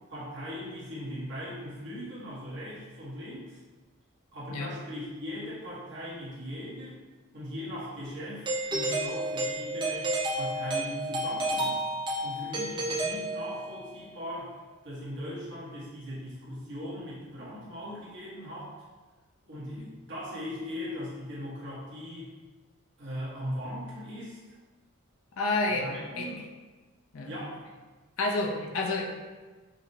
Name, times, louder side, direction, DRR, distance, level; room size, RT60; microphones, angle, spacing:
voice 1, 0.1-3.6 4.3-7.0 7.3-11.8 12.2-14.5 14.8-18.7 19.4-22.3 23.0-24.4 25.7-26.4 27.2-27.7, equal, 55° right, -8 dB, 1.1 m, -39 dB
Doorbell, 8.5-13.9, right 1 dB, 20° right, 0.3 m, -31 dB
voice 2, 25.4-25.9 26.2-26.3 27.1-27.3 28.2-29.1, left 2 dB, 75° left, 0 dB, 0.5 m, -29 dB
5.0 x 2.0 x 2.7 m, 1.3 s
head